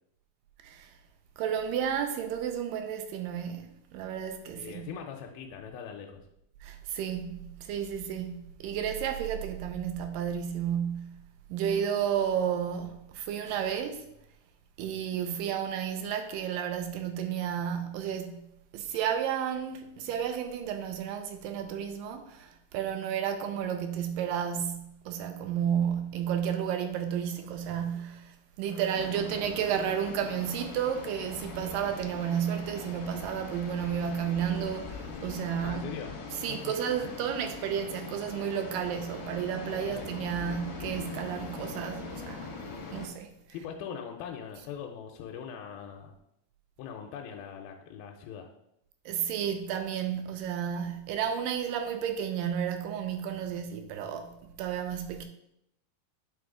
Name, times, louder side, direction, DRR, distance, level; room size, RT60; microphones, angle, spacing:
voice 1, 1.4-4.9 6.6-11.2 11.5-14.1 14.8-18.4 18.7-35.8 36.3-42.5 42.9-43.3 49.1-55.3, right 8 dB, 80° right, 2.0 m, -32 dB
voice 2, 4.6-6.2 35.6-36.7 37.0-37.1 39.7-40.1 43.5-46.1 46.8-48.5, left 7 dB, 85° left, 2.3 m, -41 dB
sound 1, 28.9-43.1, left 4 dB, 65° left, 1.1 m, -41 dB
9.0 x 3.7 x 3.6 m
omnidirectional pair, 4.2 m